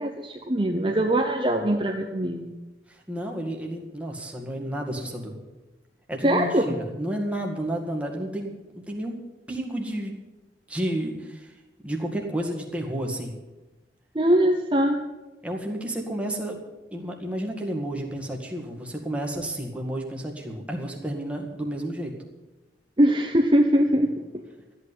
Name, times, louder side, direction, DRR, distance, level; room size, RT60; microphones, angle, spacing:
voice 1, 0.0-2.5 6.2-6.7 14.1-15.0 23.0-24.1, right 1 dB, 25° right, 2 dB, 0.9 m, -22 dB
voice 2, 2.9-5.4 6.1-9.2 9.5-10.2 10.7-11.5 11.8-13.3 15.4-16.6 16.9-22.1, right 1 dB, 5° right, 1 dB, 1.9 m, -31 dB
13.5 x 8.6 x 9.5 m, 1.1 s
head